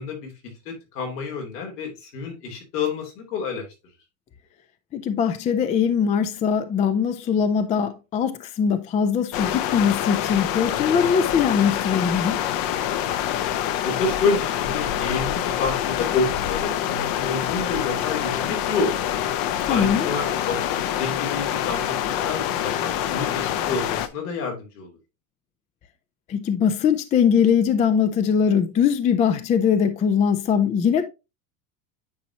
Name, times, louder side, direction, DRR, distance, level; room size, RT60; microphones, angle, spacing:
voice 1, 0.0-3.7 13.8-19.0 19.7-24.9, left 4 dB, 85° left, 3.2 m, -29 dB
voice 2, 4.9-12.4 19.6-20.1 26.3-31.0, left 7 dB, 15° left, 0.3 m, -21 dB
sound 1, 9.3-24.1, left 11 dB, 50° left, 0.7 m, -26 dB
9.5 x 4.2 x 2.8 m
supercardioid pair, 120°, 46 cm